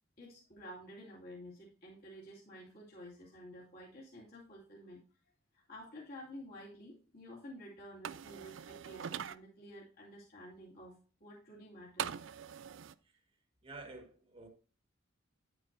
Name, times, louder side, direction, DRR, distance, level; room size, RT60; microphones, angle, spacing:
voice 1, 0.2-5.0 5.5-12.3, equal, 50° left, -6 dB, 2.6 m, -51 dB
sound 1, 8.0-9.4 12.0-12.9, right 8 dB, 65° right, 0.4 m, -42 dB
voice 2, 13.6-14.5, right 3 dB, 30° right, 4 dB, 1.6 m, -49 dB
10.0 x 8.6 x 2.6 m, 0.38 s
head